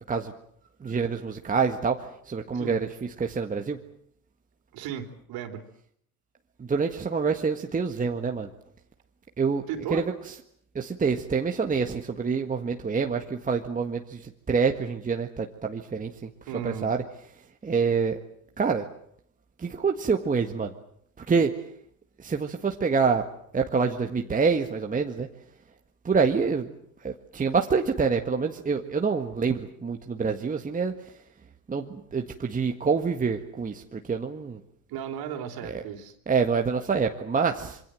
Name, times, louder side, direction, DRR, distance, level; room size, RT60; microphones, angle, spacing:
voice 1, 0.8-3.8 6.6-8.5 9.4-9.6 9.9-10.3 10.7-16.3 16.6-17.0 17.6-18.2 18.6-18.9 19.6-20.7 21.2-21.5 22.2-23.2 23.5-25.3 26.0-26.7 27.0-30.9 31.7-34.6 35.6-35.8 36.3-37.8, right 5 dB, 20° right, 4 dB, 1.7 m, -26 dB
voice 2, 4.7-5.6 9.7-10.1 16.5-16.9 34.9-36.1, right 9 dB, 55° right, 5 dB, 3.7 m, -35 dB
26.5 x 24.0 x 7.7 m, 0.67 s
supercardioid pair, 105°, 43 cm